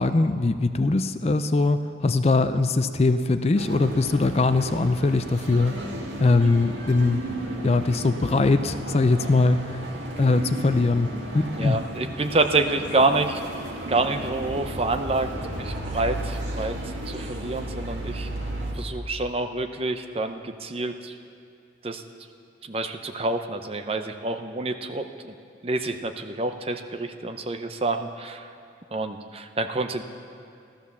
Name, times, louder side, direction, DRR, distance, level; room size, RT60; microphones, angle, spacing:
voice 1, 0.0-5.8 6.2-7.2 7.6-9.8 10.2-11.1 11.3-11.8, left 3 dB, 35° left, 10 dB, 0.4 m, -21 dB
sound 1, 3.5-18.7, right 1 dB, 80° right, 1.8 m, -34 dB
voice 2, 11.5-13.4 13.9-16.8 17.1-18.3 18.7-21.2 21.8-22.0 22.6-25.3 25.6-28.5 28.9-30.0, right 2 dB, 30° right, 7 dB, 0.7 m, -27 dB
14.5 x 13.0 x 7.0 m, 2.4 s
head